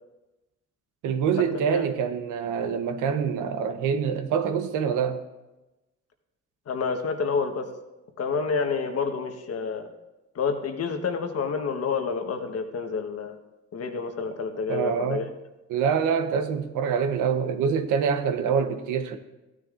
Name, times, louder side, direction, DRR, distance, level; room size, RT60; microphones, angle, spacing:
voice 1, 1.0-5.2 14.7-15.2 15.7-19.2, right 7 dB, 90° right, 0.9 m, -25 dB
voice 2, 6.7-7.7 8.2-9.9 10.3-13.4 13.7-15.3, left 5 dB, 55° left, 1.2 m, -28 dB
14.5 x 9.9 x 2.5 m
cardioid pair, 90°, 30 cm